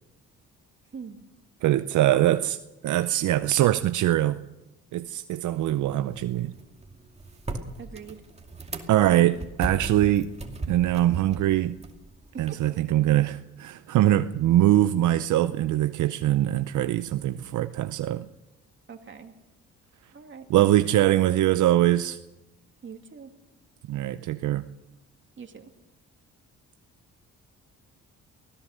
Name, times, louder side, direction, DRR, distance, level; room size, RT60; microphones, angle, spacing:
voice 1, 1.6-4.4 4.9-6.5 8.9-10.3 10.7-11.8 12.4-18.3 20.5-22.2 23.9-24.7, right 13 dB, 75° right, 11 dB, 0.7 m, -23 dB
sound 1, 5.5-12.5, right 2 dB, 20° right, 2.4 m, -38 dB
voice 2, 7.8-8.2 12.5-12.6 18.9-19.3 20.1-20.5 22.8-23.3 25.4-25.7, right 6 dB, 40° right, 4 dB, 2.5 m, -43 dB
24.0 x 17.0 x 6.7 m, 1.0 s
cardioid pair, 90°, 30 cm